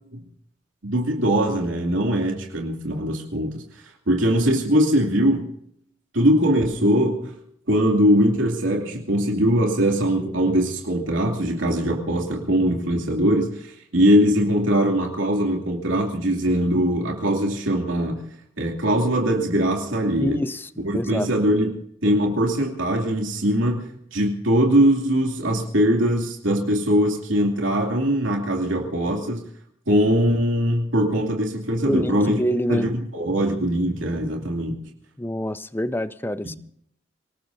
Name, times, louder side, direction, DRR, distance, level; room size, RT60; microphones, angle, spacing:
voice 1, 0.8-3.6 4.1-5.5 6.1-7.3 7.7-18.2 18.6-20.4 20.8-21.7 22.0-29.4 29.9-32.4 32.7-34.7, equal, 80° right, 1 dB, 2.7 m, -21 dB
voice 2, 20.2-21.3 31.9-32.9 35.2-36.6, equal, 10° left, 14 dB, 0.5 m, -26 dB
26.5 x 19.0 x 2.8 m, 0.68 s
head